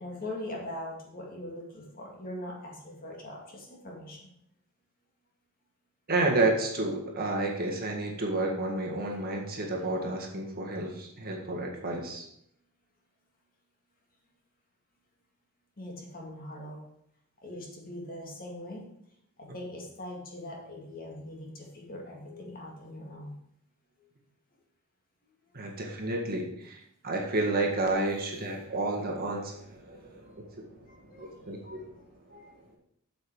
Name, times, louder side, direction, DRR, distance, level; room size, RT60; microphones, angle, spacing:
voice 1, 0.0-4.3 15.8-16.8 17.4-18.8 19.4-23.4 29.9-30.4 30.9-31.8 32.3-32.6, left 1 dB, 45° left, -1 dB, 2.2 m, -42 dB
voice 2, 6.1-12.3 25.5-32.4 32.7-32.8, right 2 dB, 45° right, 0 dB, 1.8 m, -31 dB
8.0 x 7.0 x 4.8 m, 0.73 s
head